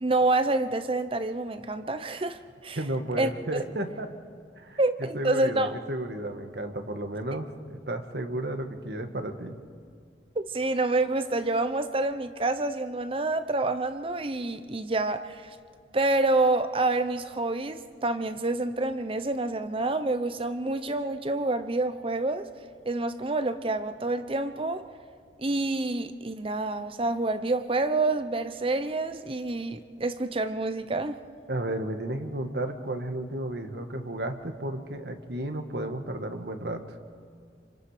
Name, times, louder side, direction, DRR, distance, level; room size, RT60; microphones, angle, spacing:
voice 1, 0.0-2.8 3.2-3.6 4.8-5.7 10.4-15.4 15.9-22.5 22.9-24.8 25.4-31.2, right 2 dB, 30° right, 0.8 m, -27 dB
voice 2, 2.8-4.1 4.6-7.5 7.9-9.6 31.5-37.0, right 1 dB, 65° right, 1.6 m, -33 dB
27.5 x 25.5 x 5.0 m
head